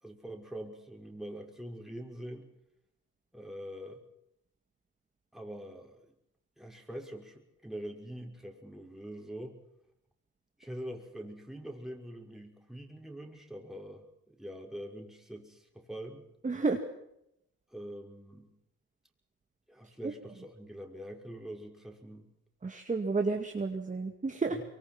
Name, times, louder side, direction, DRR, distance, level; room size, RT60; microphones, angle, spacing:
voice 1, 0.0-2.5 3.3-4.0 5.3-6.0 6.6-9.5 10.6-16.2 17.7-18.5 19.7-22.3 24.5-24.6, right 1 dB, ahead, 2 dB, 5.6 m, -44 dB
voice 2, 16.4-16.8 22.6-24.6, right 4 dB, 25° right, 4 dB, 2.2 m, -31 dB
24.5 x 23.5 x 6.1 m, 0.79 s
cardioid pair, 90°, 30 cm